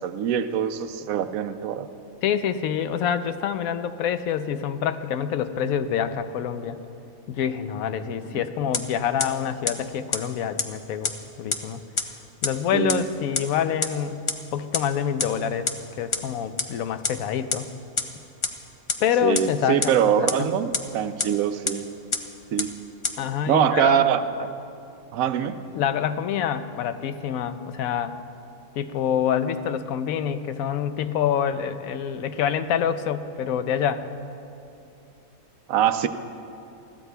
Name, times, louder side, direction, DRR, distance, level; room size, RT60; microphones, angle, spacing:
voice 1, 0.0-1.9 8.3-8.4 12.7-13.0 19.2-21.9 22.5-22.7 23.5-24.5 25.1-25.6 35.7-36.1, right 9 dB, 80° right, 10 dB, 1.0 m, -23 dB
voice 2, 2.2-6.8 7.3-11.8 12.4-14.2 14.5-15.7 16.0-17.7 19.0-20.5 23.2-24.0 25.7-28.1 28.7-34.1, left 8 dB, 85° left, 11 dB, 1.0 m, -26 dB
sound 1, 8.7-8.8 9.2-9.3 9.7-9.8 10.1-10.2 10.6-10.7 11.0-11.1 11.5-11.6 12.0-12.1 12.4-12.5 12.9-13.0 13.3-13.4 13.8-13.9 14.3-14.4 14.7-14.8 15.2-15.3 15.7-15.8 16.1-16.2 16.6-16.7 17.0-17.1 17.5-17.6 18.0-18.1 18.4-18.5 18.9-19.0 19.3-19.4 19.8-19.9 20.3-20.4 20.7-20.8 21.2-21.3 21.7-21.8 22.1-22.2 22.6-22.7 23.0-23.1, left 4 dB, 45° left, 0.3 m, -23 dB
20.5 x 15.0 x 2.2 m, 2.7 s
omnidirectional pair, 1.4 m